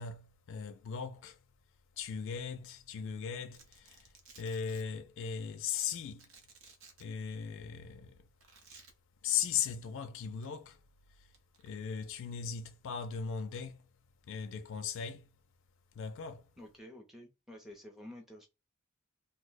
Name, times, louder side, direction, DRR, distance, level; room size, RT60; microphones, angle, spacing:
voice 1, 0.0-1.4 1.9-6.3 7.0-8.3 9.2-10.8 11.1-11.3 11.6-13.9 14.3-15.3 15.9-16.5, left 7 dB, 65° left, 0.3 m, -38 dB
Domestic sounds home sounds, 3.5-4.8 5.9-7.0 8.4-8.9 10.3-10.5 11.3-11.7, right 4 dB, 65° right, 0.7 m, -57 dB
voice 2, 16.6-18.5, left 1 dB, ahead, 0.5 m, -50 dB
2.7 x 2.0 x 3.9 m
head